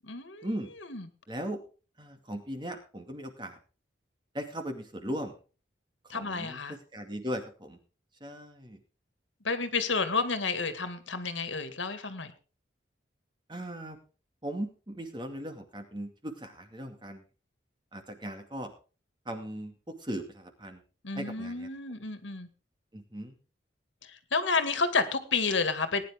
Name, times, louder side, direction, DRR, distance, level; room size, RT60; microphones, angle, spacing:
voice 1, 0.1-0.5 0.9-1.0 6.1-6.7 9.4-12.3 21.0-22.5 24.3-26.0, left 4 dB, 85° left, 10 dB, 2.1 m, -30 dB
voice 2, 1.3-1.6 2.0-3.6 4.3-5.3 6.1-7.8 8.2-8.8 13.5-14.0 14.4-17.2 17.9-18.7 19.3-20.8 21.1-21.7 22.9-23.4, equal, 25° right, 6 dB, 2.2 m, -38 dB
19.0 x 10.0 x 3.7 m, 0.36 s
head